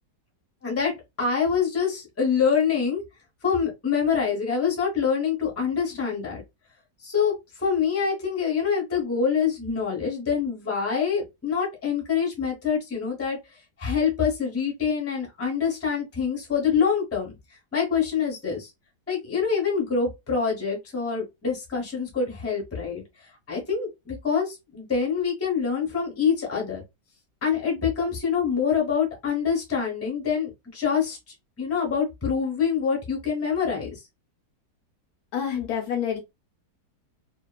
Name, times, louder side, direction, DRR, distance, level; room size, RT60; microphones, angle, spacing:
voice 1, 0.6-3.0 3.4-6.4 7.0-13.4 13.8-17.3 17.7-18.7 19.1-23.0 23.5-26.8 27.4-31.2 31.6-33.9, left 6 dB, 10° left, 0.7 m, -25 dB
voice 2, 35.3-36.2, left 8 dB, 70° left, 1.0 m, -27 dB
2.9 x 2.3 x 2.3 m
omnidirectional pair, 1.9 m